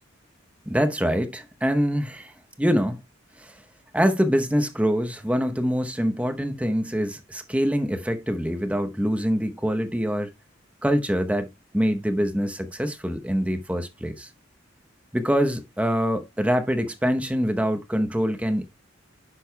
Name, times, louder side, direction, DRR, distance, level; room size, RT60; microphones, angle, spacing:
voice 1, 0.7-2.3 2.6-3.0 3.4-3.5 3.9-10.3 10.8-11.5 11.7-14.3 15.1-18.7, equal, 5° right, 0.8 m, -24 dB
10.0 x 6.3 x 2.2 m
head